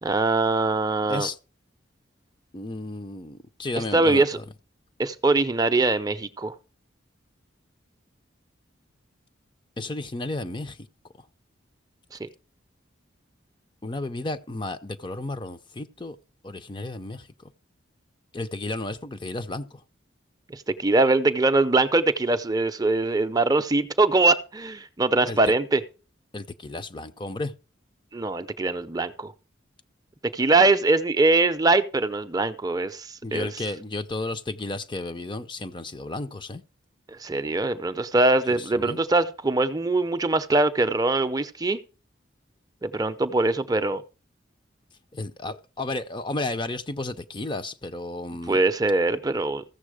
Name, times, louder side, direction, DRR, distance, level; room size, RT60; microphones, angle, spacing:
voice 1, 0.0-1.3 3.9-4.4 5.0-6.5 12.1-12.3 20.5-25.8 28.1-29.3 30.3-33.6 37.1-41.8 42.8-44.0 48.5-49.6, right 2 dB, 20° right, 0.6 m, -22 dB
voice 2, 2.5-4.4 9.8-10.8 13.8-16.2 16.4-17.3 18.3-19.8 25.3-25.4 26.3-27.5 33.2-36.6 38.5-39.0 45.1-48.6, left 2 dB, 25° left, 0.6 m, -33 dB
14.5 x 7.1 x 4.9 m
head